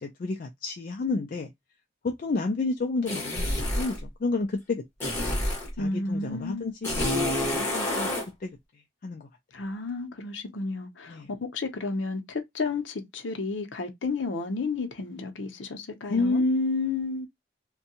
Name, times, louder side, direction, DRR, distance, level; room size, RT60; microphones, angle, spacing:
voice 1, 0.0-1.5 2.0-4.8 5.8-8.1 8.4-8.6 9.0-9.3 11.1-11.3 16.1-17.3, left 3 dB, 50° left, 0.4 m, -29 dB
sound 1, 3.1-4.0 5.0-5.7 6.8-8.3, left 1 dB, 15° left, 1.2 m, -28 dB
voice 2, 5.8-6.7 9.5-16.4, left 3 dB, 85° left, 0.7 m, -32 dB
2.6 x 2.2 x 2.7 m
head